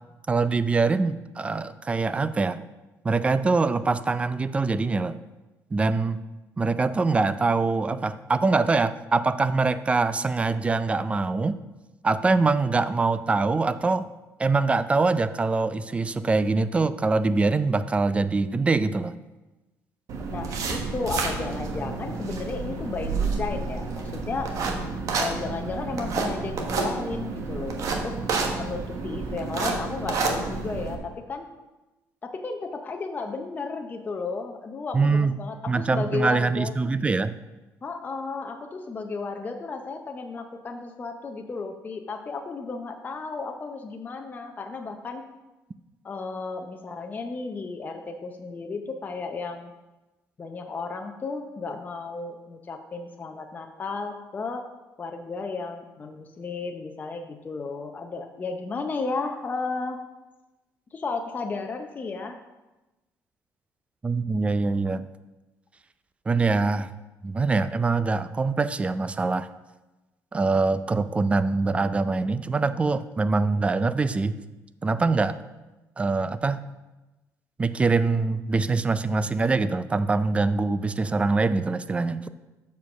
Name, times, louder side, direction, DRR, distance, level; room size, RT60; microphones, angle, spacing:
voice 1, 0.3-2.6 3.0-5.2 5.7-6.2 6.6-11.6 12.0-14.1 14.4-19.1 34.9-35.4 35.7-37.3 64.0-65.1 66.3-66.9 67.2-69.5 70.3-74.3 74.8-75.4 76.0-76.6 77.6-82.3, right 3 dB, 20° right, 13 dB, 0.4 m, -24 dB
sound 1, 20.1-30.9, right 4 dB, 60° right, 1.2 m, -29 dB
voice 2, 20.3-24.6 25.2-28.2 28.5-31.5 32.2-36.9 37.8-45.2 46.0-49.7 50.4-54.7 55.0-60.0 60.9-62.4, left 4 dB, 25° left, 4 dB, 0.6 m, -33 dB
7.2 x 4.6 x 6.0 m, 1.1 s
cardioid pair, 120°, 6 cm